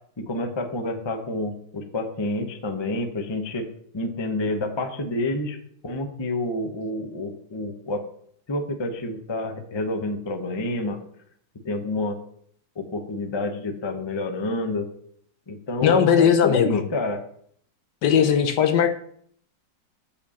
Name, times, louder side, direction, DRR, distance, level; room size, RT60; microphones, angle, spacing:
voice 1, 0.2-3.7 3.9-5.6 5.8-8.0 8.5-11.0 11.6-12.2 12.8-14.9 15.5-17.2 18.2-18.3, left 2 dB, 25° left, 5 dB, 0.6 m, -28 dB
voice 2, 15.8-16.8 18.0-18.9, left 8 dB, 70° left, 7 dB, 1.3 m, -18 dB
6.9 x 5.3 x 7.0 m, 0.64 s
omnidirectional pair, 2.1 m